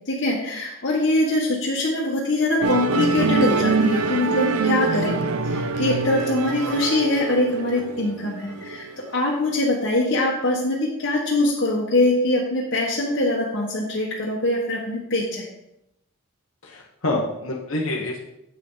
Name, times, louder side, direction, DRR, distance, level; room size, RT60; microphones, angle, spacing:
voice 1, 0.0-5.2 5.4-15.5, left 2 dB, 55° left, -6 dB, 1.3 m, -23 dB
Musical instrument, 2.6-9.2, right 3 dB, 85° right, 0.6 m, -24 dB
voice 2, 16.6-18.2, left 2 dB, 70° left, -1 dB, 1.1 m, -27 dB
8.3 x 6.2 x 3.9 m, 0.84 s
head